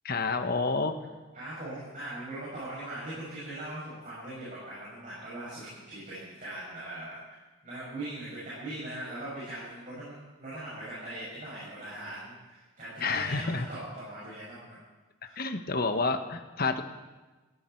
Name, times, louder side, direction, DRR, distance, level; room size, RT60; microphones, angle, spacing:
voice 1, 0.0-0.9 13.0-13.7 15.4-16.8, left 3 dB, 50° left, 7 dB, 1.2 m, -29 dB
voice 2, 1.3-14.8 15.2-15.5, right 1 dB, 40° right, -9 dB, 6.8 m, -40 dB
19.5 x 16.0 x 4.6 m, 1.2 s
head